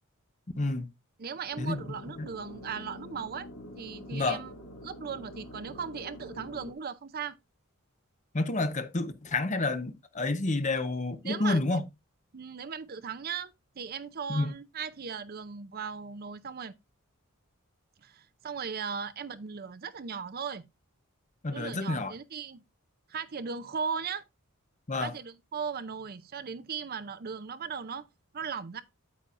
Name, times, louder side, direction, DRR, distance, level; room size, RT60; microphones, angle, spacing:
voice 1, 0.5-0.9 1.6-1.8 2.2-2.3 4.1-4.4 8.3-11.8 14.3-14.5 21.4-22.1 24.9-25.1, left 2 dB, 35° left, 0.9 m, -29 dB
voice 2, 1.2-3.5 3.8-4.5 4.8-7.4 11.2-11.6 12.3-16.7 18.0-20.6 21.5-22.6 23.1-24.2 25.0-28.1 28.3-28.8, right 6 dB, 45° right, 0.5 m, -37 dB
sound 1, 1.5-6.7, left 1 dB, 70° left, 2.4 m, -46 dB
8.7 x 8.5 x 2.5 m
head